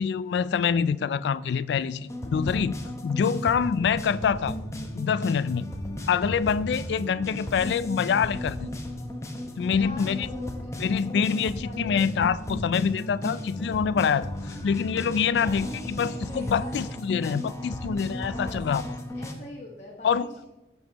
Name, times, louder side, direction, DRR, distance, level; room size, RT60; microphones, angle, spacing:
voice 1, 0.0-2.8 3.0-4.6 4.9-5.6 6.1-8.7 9.6-10.3 10.8-14.3 14.6-18.8 20.0-20.4, left 6 dB, 75° left, 0.3 m, -25 dB
sound 1, 2.1-19.3, left 1 dB, 15° left, 0.8 m, -35 dB
voice 2, 9.6-10.7 11.0-12.1 15.3-16.8 18.3-18.6 19.1-20.4, left 2 dB, 40° left, 1.3 m, -43 dB
14.0 x 5.4 x 2.9 m
head